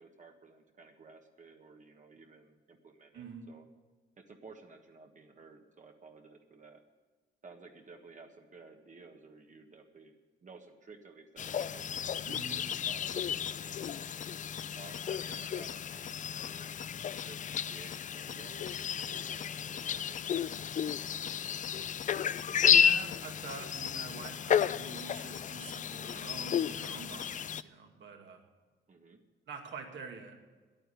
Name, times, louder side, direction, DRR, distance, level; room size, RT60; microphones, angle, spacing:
voice 1, 0.0-3.6 4.2-6.8 7.4-10.1 10.4-12.1 12.5-14.0 14.7-20.3 28.9-29.2, right 3 dB, 40° right, 4 dB, 1.4 m, -54 dB
voice 2, 3.1-3.5 12.3-12.6 22.6-28.4 29.5-30.6, right 5 dB, 70° right, 2 dB, 2.4 m, -46 dB
sound 1, 11.4-27.6, left 8 dB, 40° left, 0.4 m, -32 dB
10.0 x 9.1 x 9.9 m, 1.4 s
cardioid pair, 90°, 20 cm